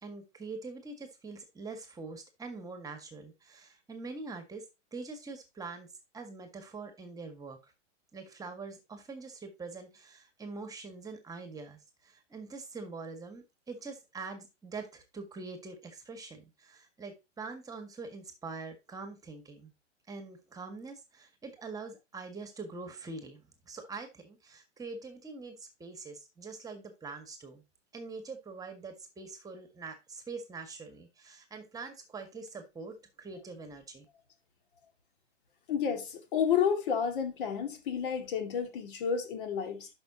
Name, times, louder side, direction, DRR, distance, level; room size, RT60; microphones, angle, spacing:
voice 1, 0.0-4.6 4.9-5.9 6.1-7.6 8.1-19.7 20.1-27.6 27.9-34.0, right 4 dB, 10° right, 1.7 m, -44 dB
voice 2, 35.7-39.9, left 7 dB, 45° left, 2.2 m, -30 dB
11.5 x 5.4 x 2.9 m
figure-of-eight pair, 115°, 36 cm